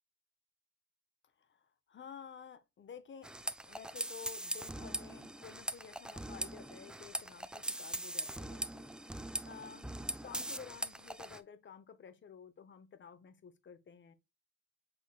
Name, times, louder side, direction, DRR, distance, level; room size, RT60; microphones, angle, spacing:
voice 1, 1.9-3.3 3.7-8.8 9.4-14.1, left 7 dB, 40° left, 0.8 m, -52 dB
sound 1, 3.2-11.4, right 1 dB, 5° right, 0.3 m, -41 dB
6.2 x 3.4 x 2.3 m
cardioid pair, 90°, 30 cm